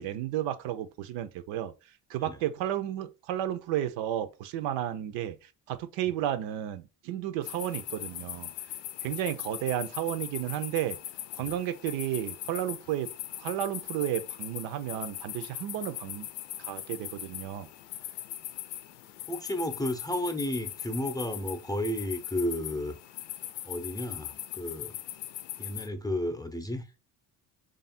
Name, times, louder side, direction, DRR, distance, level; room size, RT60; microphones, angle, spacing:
voice 1, 0.0-1.7 2.1-8.5 9.0-11.0 11.3-13.1 13.4-16.3 16.6-17.7, right 12 dB, 75° right, 0.7 m, -32 dB
sound 1, 7.4-25.9, left 13 dB, 65° left, 0.6 m, -40 dB
voice 2, 19.3-22.9 23.7-24.9 25.6-26.8, left 1 dB, 10° left, 0.6 m, -32 dB
3.3 x 2.5 x 4.2 m
supercardioid pair, 80°, 45 cm